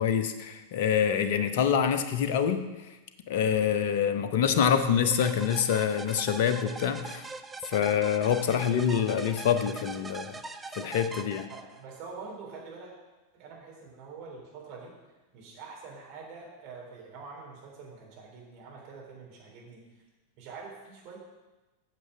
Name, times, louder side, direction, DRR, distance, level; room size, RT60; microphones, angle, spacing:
voice 1, 0.0-2.6 3.3-7.2 7.7-10.4 10.7-11.5, left 8 dB, 50° left, 9 dB, 0.8 m, -26 dB
sound 1, 5.1-12.0, right 3 dB, 10° right, 0.5 m, -41 dB
voice 2, 11.5-12.9 13.3-20.0 20.4-21.2, right 4 dB, 45° right, -2 dB, 3.3 m, -45 dB
9.2 x 6.8 x 6.0 m, 1.1 s
figure-of-eight pair, 90°, 0 cm